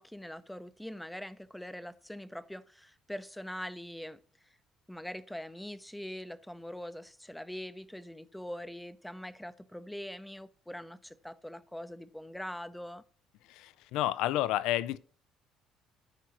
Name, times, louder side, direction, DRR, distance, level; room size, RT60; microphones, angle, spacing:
voice 1, 0.0-4.2 4.9-13.0, left 1 dB, 5° left, 0.5 m, -43 dB
voice 2, 13.5-15.0, left 14 dB, 80° left, 0.4 m, -30 dB
13.0 x 4.7 x 3.0 m
supercardioid pair, 90°, 0 cm